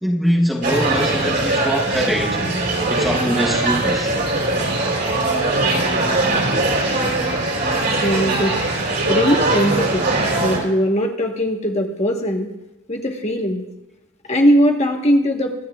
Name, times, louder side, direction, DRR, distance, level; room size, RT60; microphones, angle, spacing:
voice 1, 0.0-2.5 2.9-4.1, equal, ahead, -2 dB, 1.0 m, -22 dB
sound 1, 0.6-10.6, right 2 dB, 55° right, 3.8 m, -20 dB
voice 2, 8.0-10.1 10.4-12.5 12.9-13.7 14.3-15.5, equal, 35° left, 2 dB, 1.3 m, -20 dB
25.0 x 9.8 x 2.4 m, 0.97 s
head